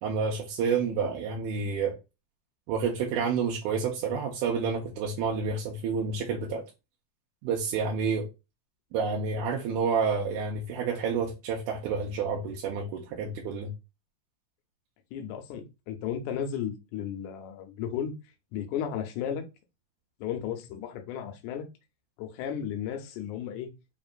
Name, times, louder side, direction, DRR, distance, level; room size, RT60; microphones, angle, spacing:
voice 1, 0.0-2.0 2.7-6.6 7.4-8.3 8.9-13.7, right 5 dB, 85° right, 2.1 m, -29 dB
voice 2, 15.1-18.2 18.5-19.4 20.2-21.7 22.2-23.7, left 9 dB, 80° left, 2.0 m, -34 dB
5.1 x 2.9 x 2.4 m
omnidirectional pair, 3.6 m